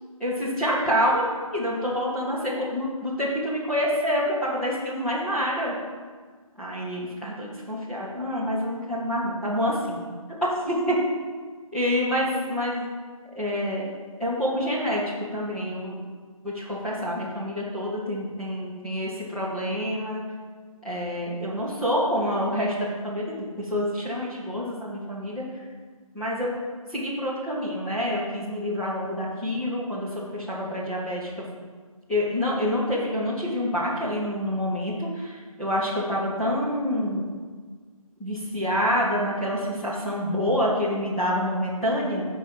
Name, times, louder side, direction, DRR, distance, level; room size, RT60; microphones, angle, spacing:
voice 1, 0.2-5.7 6.6-10.0 10.4-11.0 11.7-12.9 13.3-13.9 14.2-15.9 16.4-19.1 19.3-20.2 20.8-25.4 26.1-26.5 26.9-31.3 32.1-37.3 38.2-42.3, equal, ahead, -10 dB, 0.6 m, -27 dB
9.9 x 4.7 x 5.8 m, 1.5 s
figure-of-eight pair, 155°, 19 cm